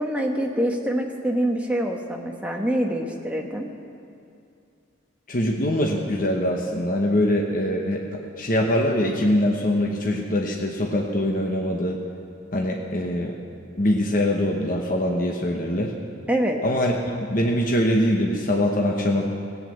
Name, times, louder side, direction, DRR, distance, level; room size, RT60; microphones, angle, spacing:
voice 1, 0.0-3.7 16.3-16.6, right 1 dB, 5° right, 1 dB, 1.1 m, -25 dB
voice 2, 5.3-12.0 12.5-13.4 13.8-15.9 16.6-17.0 17.3-19.3, left 1 dB, 45° left, 0 dB, 1.0 m, -23 dB
17.0 x 8.4 x 7.9 m, 2.5 s
head